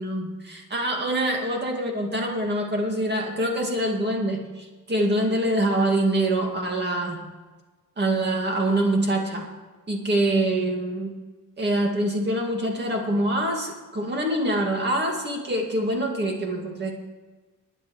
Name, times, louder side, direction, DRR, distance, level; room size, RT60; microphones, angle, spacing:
voice 1, 0.0-7.2 8.0-9.5 9.9-11.1 11.6-16.9, right 1 dB, 30° right, 1 dB, 2.1 m, -25 dB
20.5 x 10.0 x 3.1 m, 1.3 s
wide cardioid pair, 165°, 33 cm